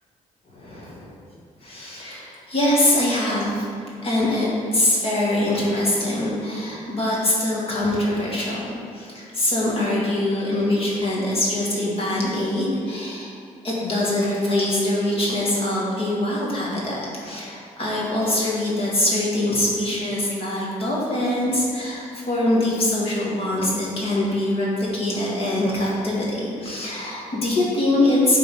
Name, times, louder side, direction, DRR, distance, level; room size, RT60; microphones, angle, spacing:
voice 1, 0.5-1.1 1.6-3.7 4.0-13.3 13.6-28.4, left 1 dB, 45° left, -5 dB, 1.8 m, -23 dB
8.2 x 3.6 x 5.5 m, 2.3 s
cardioid pair, 125°, 13 cm